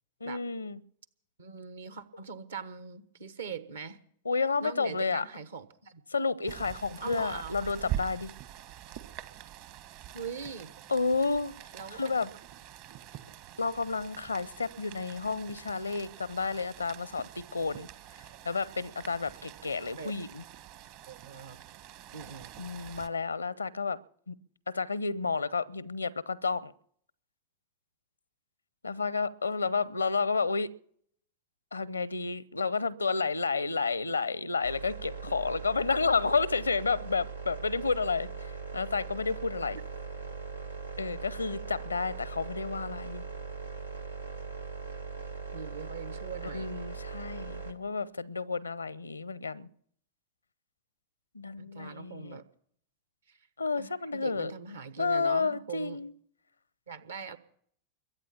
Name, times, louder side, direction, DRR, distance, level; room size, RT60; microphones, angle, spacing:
voice 1, 0.2-0.8 4.2-5.2 6.1-8.3 10.9-11.5 11.9-12.3 13.6-17.9 18.4-20.4 22.6-24.0 24.3-24.4 24.7-26.7 28.8-30.7 31.7-39.8 41.0-43.2 46.5-49.7 51.3-52.4 53.6-54.5 55.0-56.1, left 4 dB, 80° left, 0.7 m, -31 dB
voice 2, 1.4-4.0 4.6-6.0 7.0-7.7 10.1-10.7 11.7-12.1 20.0-20.1 21.1-21.6 22.1-22.5 35.3-35.4 39.7-39.8 45.5-46.7 51.6-52.5 53.3-53.4 53.8-56.0 56.9-57.4, right 5 dB, 70° right, 1.2 m, -42 dB
Rain, 6.5-23.1, right 12 dB, 50° right, 1.2 m, -45 dB
sound 1, 34.6-47.7, right 4 dB, 85° right, 1.6 m, -40 dB
22.0 x 8.9 x 7.2 m
figure-of-eight pair, 90°, 0 cm